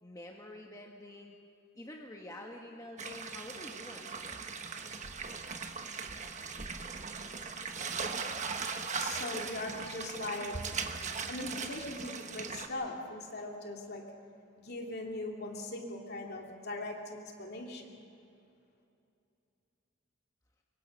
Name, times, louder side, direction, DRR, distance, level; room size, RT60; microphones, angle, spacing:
voice 1, 0.0-1.4 1.7-4.4, left 1 dB, 15° left, 0 dB, 1.3 m, -48 dB
sound 1, 3.0-12.7, right 5 dB, 35° right, 1.2 m, -39 dB
voice 2, 9.0-10.6 11.3-14.0 14.6-17.9, left 2 dB, 50° left, 1 dB, 2.6 m, -40 dB
24.0 x 23.5 x 5.4 m, 2.6 s
head